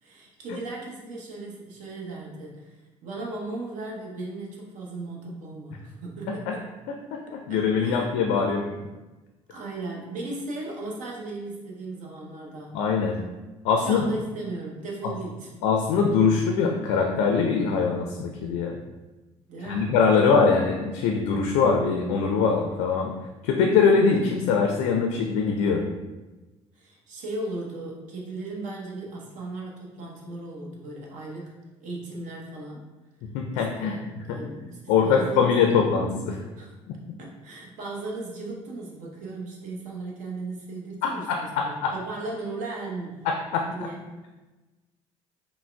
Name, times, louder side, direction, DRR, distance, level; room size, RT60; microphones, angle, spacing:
voice 1, 0.0-6.4 7.5-8.1 9.5-12.8 13.8-15.5 19.5-19.9 26.8-31.5 31.8-32.8 33.5-35.8 36.6-36.7 37.2-43.3 43.7-44.0, right 2 dB, 55° right, -1 dB, 0.8 m, -36 dB
voice 2, 7.5-8.7 12.7-13.2 13.6-14.1 15.0-15.1 15.6-18.8 19.6-23.1 23.4-25.8 33.3-33.9 34.3-34.4 34.9-36.4 36.9-37.0 41.0-41.9 43.3-43.9, left 5 dB, 60° left, 3 dB, 0.4 m, -23 dB
5.6 x 2.1 x 2.2 m, 1.1 s
figure-of-eight pair, 55°, 15 cm